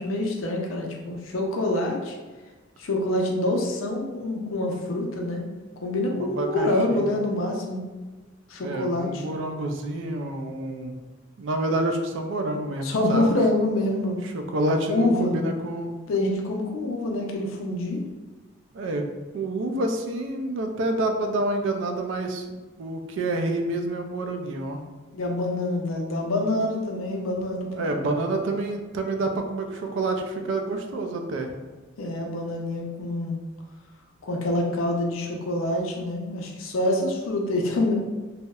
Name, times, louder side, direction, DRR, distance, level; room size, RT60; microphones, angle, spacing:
voice 1, 0.0-2.2 2.8-5.4 5.8-7.8 8.5-9.2 12.8-14.3 14.9-15.3 16.1-18.0 25.1-27.9 32.0-33.4 34.2-37.9, left 1 dB, 90° left, 1 dB, 0.5 m, -26 dB
voice 2, 6.2-7.0 8.6-11.0 11.4-13.3 14.2-16.0 18.7-19.1 19.3-24.8 27.7-31.5, right 2 dB, 65° right, 5 dB, 0.3 m, -28 dB
2.7 x 2.0 x 2.3 m, 1.3 s
head